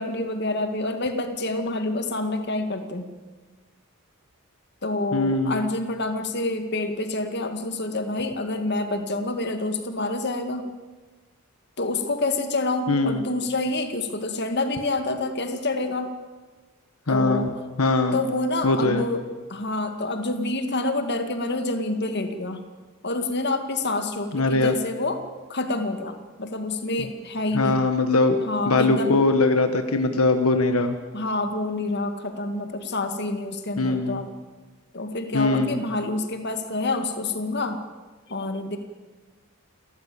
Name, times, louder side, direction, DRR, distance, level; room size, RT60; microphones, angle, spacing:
voice 1, 0.0-3.1 4.8-10.7 11.8-16.1 17.1-17.5 18.1-19.2 19.5-22.6 23.0-25.2 25.5-27.8 28.5-29.2 31.1-34.3 34.9-37.8 38.3-38.8, left 2 dB, 50° left, 6 dB, 2.2 m, -27 dB
voice 2, 5.1-5.6 12.9-13.2 17.1-17.5 17.8-18.2 18.6-19.0 24.3-24.7 27.5-28.3 28.7-31.0 33.8-34.2 35.3-35.8, left 3 dB, 85° left, 7 dB, 1.4 m, -21 dB
28.5 x 13.5 x 8.6 m, 1.4 s
head